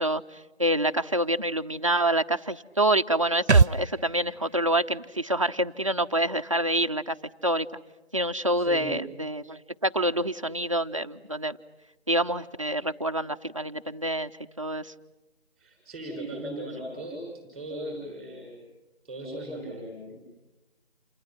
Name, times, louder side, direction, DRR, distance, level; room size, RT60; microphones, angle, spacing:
voice 1, 0.0-7.2 7.4-7.7 8.1-11.6 12.1-14.3 14.6-14.9, right 1 dB, 30° right, 6 dB, 0.8 m, -27 dB
sound 1, 3.5-7.0 7.3-7.4, right 4 dB, 90° right, 0.8 m, -27 dB
voice 2, 8.6-9.0 15.6-17.3 17.5-18.6 19.0-20.2, right 1 dB, ahead, 0 dB, 5.8 m, -37 dB
28.5 x 28.5 x 5.9 m, 1.0 s
figure-of-eight pair, 165°, 33 cm